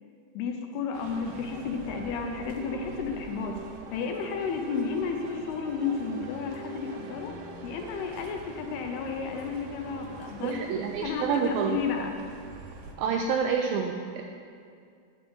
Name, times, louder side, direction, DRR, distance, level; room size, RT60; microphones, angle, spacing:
voice 1, 0.3-3.5 3.9-7.3 7.6-10.6 11.0-12.2, left 5 dB, 80° left, 4 dB, 2.7 m, -32 dB
sound 1, 0.9-12.9, right 3 dB, 65° right, 2.3 m, -43 dB
voice 2, 10.4-11.8 13.0-14.2, right 6 dB, 90° right, 3 dB, 2.0 m, -28 dB
9.7 x 6.2 x 7.9 m, 2.3 s
omnidirectional pair, 4.8 m